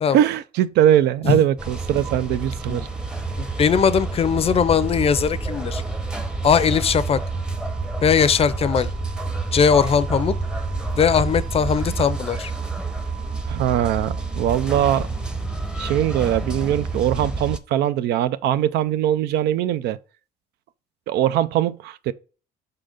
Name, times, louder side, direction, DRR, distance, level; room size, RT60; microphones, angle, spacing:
voice 1, 0.1-2.9 13.5-15.1 15.8-20.0 21.1-22.1, right 11 dB, 80° right, 0.5 m, -21 dB
sound 1, 1.6-17.6, right 3 dB, 5° right, 0.7 m, -28 dB
voice 2, 3.4-5.8 6.4-7.2 8.0-8.9 9.5-10.3 11.0-12.5, left 7 dB, 35° left, 0.5 m, -19 dB
5.5 x 3.9 x 4.9 m
cardioid pair, 110°, 17 cm